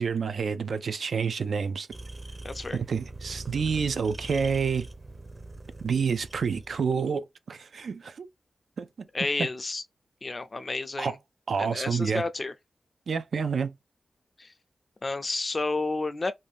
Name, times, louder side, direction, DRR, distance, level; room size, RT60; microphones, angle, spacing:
voice 1, 0.0-1.9 2.7-4.9 5.8-8.3 8.8-8.9 9.4-9.5 11.0-11.2 11.5-12.2 13.1-13.7, right 6 dB, 80° right, 0.3 m, -28 dB
sound 1, 1.9-7.0, right 2 dB, 25° right, 0.6 m, -42 dB
voice 2, 2.4-2.8 9.1-9.8 10.2-11.2 11.6-12.5 14.4-14.5 15.0-16.3, left 3 dB, 35° left, 0.4 m, -30 dB
2.6 x 2.2 x 3.2 m
wide cardioid pair, 135°, 0 cm